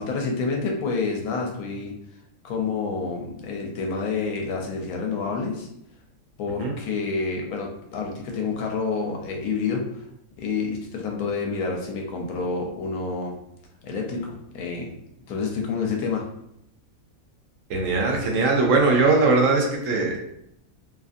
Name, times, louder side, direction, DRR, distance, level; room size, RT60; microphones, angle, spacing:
voice 1, 0.0-1.9 2.4-5.7 6.4-9.8 10.4-13.3 13.8-14.9 15.3-16.2, left 4 dB, 85° left, 1 dB, 1.1 m, -28 dB
voice 2, 17.7-20.2, right 3 dB, 70° right, 0 dB, 0.9 m, -20 dB
2.7 x 2.5 x 2.4 m, 0.77 s
omnidirectional pair, 1.5 m